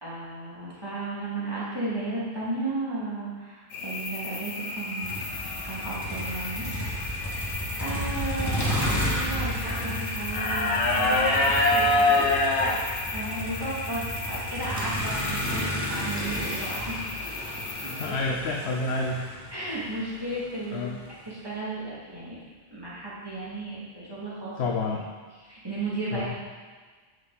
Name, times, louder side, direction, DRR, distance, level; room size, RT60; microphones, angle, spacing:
voice 1, 0.0-5.2 5.6-6.7 7.8-12.3 13.1-17.1 17.4-18.2 19.5-20.9 21.3-22.4 22.7-24.7 25.3-26.4, right 2 dB, 20° right, -9 dB, 2.7 m, -34 dB
sound 1, 3.7-18.1, left 2 dB, 85° left, 1.3 m, -29 dB
Motor vehicle (road), 5.0-21.1, equal, 15° left, 1.6 m, -33 dB
voice 2, 18.0-19.2 20.7-21.0 24.6-25.0 26.1-26.3, left 3 dB, 70° left, 0 dB, 1.0 m, -29 dB
9.2 x 6.5 x 4.2 m, 1.4 s
omnidirectional pair, 1.2 m